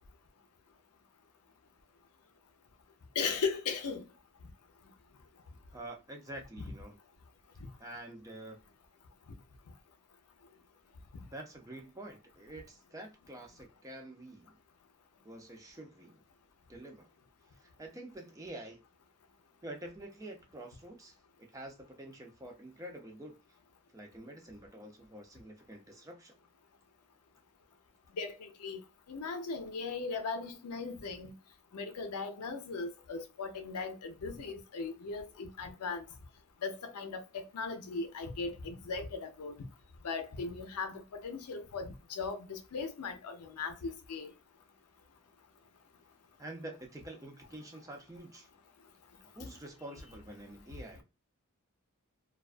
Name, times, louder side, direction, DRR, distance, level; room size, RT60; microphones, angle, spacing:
voice 1, 3.2-4.0 28.1-28.8 29.1-31.3 31.7-36.0 36.6-39.5 40.0-44.3, left 4 dB, 90° left, 0.5 m, -38 dB
voice 2, 5.7-7.0 7.8-8.6 11.3-14.6 15.2-16.2 16.7-17.1 17.5-18.8 19.6-23.4 23.9-26.4 46.4-48.5 49.3-51.0, right 1 dB, 15° right, 0.5 m, -47 dB
2.3 x 2.2 x 2.3 m
head